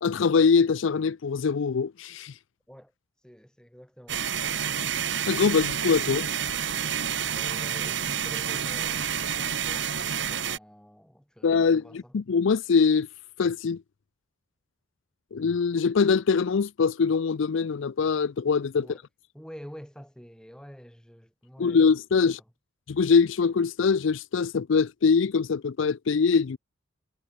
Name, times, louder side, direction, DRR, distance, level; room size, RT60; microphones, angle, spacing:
voice 1, 0.0-2.4 5.3-6.3 11.4-13.1 13.4-13.8 15.3-18.9 21.6-22.4 22.9-26.6, left 5 dB, 70° left, 0.4 m, -23 dB
voice 2, 3.2-4.3 7.3-12.1 18.7-19.0 19.3-21.9 22.2-22.3, equal, 5° left, 4.9 m, -47 dB
sound 1, 4.1-10.6, right 8 dB, 60° right, 1.7 m, -29 dB
head